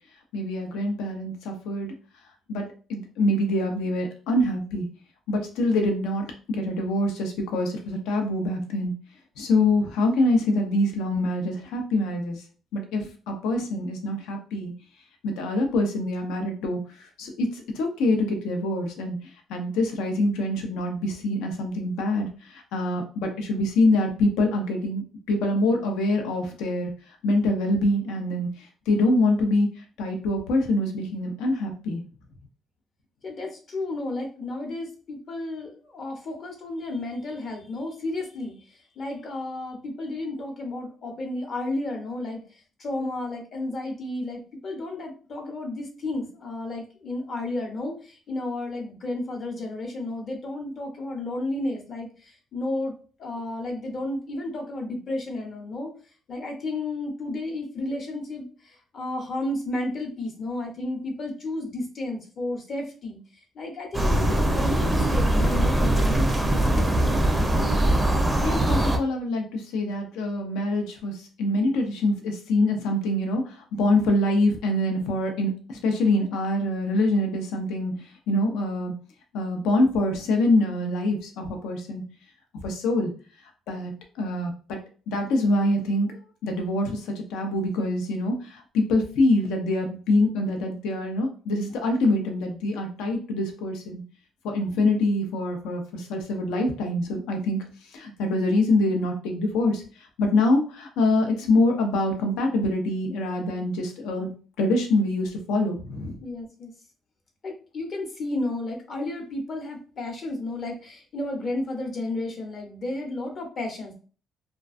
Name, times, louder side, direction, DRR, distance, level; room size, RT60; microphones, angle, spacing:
voice 1, 0.3-1.9 2.5-4.9 5.3-8.9 9.4-12.4 12.7-14.7 15.2-19.2 19.5-26.9 27.2-29.7 30.0-32.0 68.4-78.9 79.3-82.0 82.6-83.1 83.7-83.9 84.2-84.8 85.1-86.1 86.4-94.0 94.4-97.6 97.9-104.3 104.6-106.1, left 2 dB, 90° left, 4 dB, 0.5 m, -25 dB
voice 2, 33.2-38.5 39.0-42.4 42.8-55.9 56.3-63.2 63.5-67.2 106.2-106.7 107.4-114.0, left 2 dB, 50° left, 2 dB, 0.8 m, -32 dB
sound 1, 63.9-69.0, right 1 dB, 15° right, 0.4 m, -22 dB
2.4 x 2.2 x 2.4 m, 0.38 s
cardioid pair, 95°, 0 cm